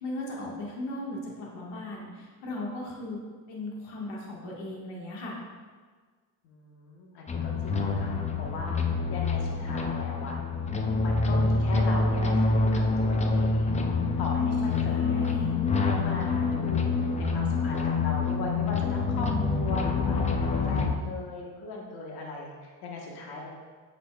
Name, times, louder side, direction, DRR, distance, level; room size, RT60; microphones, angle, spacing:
voice 1, 0.0-3.2 3.5-5.4 14.7-15.6, left 2 dB, 75° left, -3 dB, 1.8 m, -37 dB
voice 2, 6.4-10.4 11.0-13.8 14.2-19.3 19.5-23.5, left 2 dB, 60° left, -1 dB, 1.4 m, -39 dB
sound 1, 7.3-20.9, left 3 dB, 15° left, 0.4 m, -26 dB
8.0 x 5.8 x 2.4 m, 1.5 s
cardioid pair, 105°, 43 cm